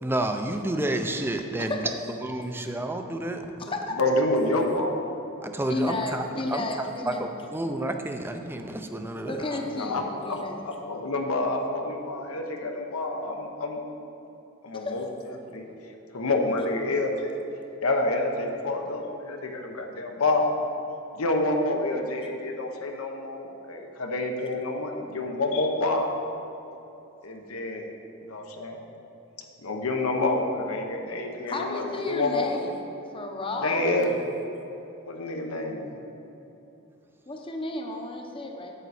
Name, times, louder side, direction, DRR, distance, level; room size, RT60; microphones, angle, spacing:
voice 1, 0.0-1.9 2.2-3.4 5.4-9.4, right 1 dB, 10° right, 6 dB, 0.4 m, -30 dB
voice 2, 4.0-5.1 9.4-10.4 10.6-13.8 14.6-15.0 15.5-15.6 16.1-17.3 17.8-20.6 21.2-26.1 27.2-27.9 28.2-28.8 29.6-32.5 33.6-34.3 35.1-35.9, left 2 dB, 85° left, 3 dB, 1.0 m, -28 dB
voice 3, 5.7-7.3 9.3-10.6 14.7-14.9 31.5-32.7 33.1-33.9 37.3-38.7, left 2 dB, 25° left, 2 dB, 0.7 m, -32 dB
9.1 x 7.9 x 4.2 m, 3.0 s
head